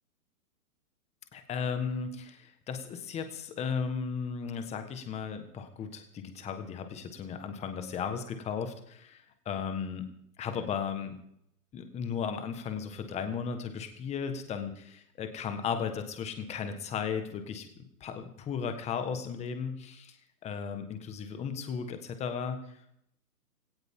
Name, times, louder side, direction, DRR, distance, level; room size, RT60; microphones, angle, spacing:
voice 1, 1.3-10.1 10.4-11.1 11.7-17.7 18.0-20.2 20.4-22.8, left 6 dB, 15° left, 8 dB, 1.4 m, -35 dB
18.0 x 17.5 x 3.7 m, 0.72 s
hypercardioid pair, 145°, 48 cm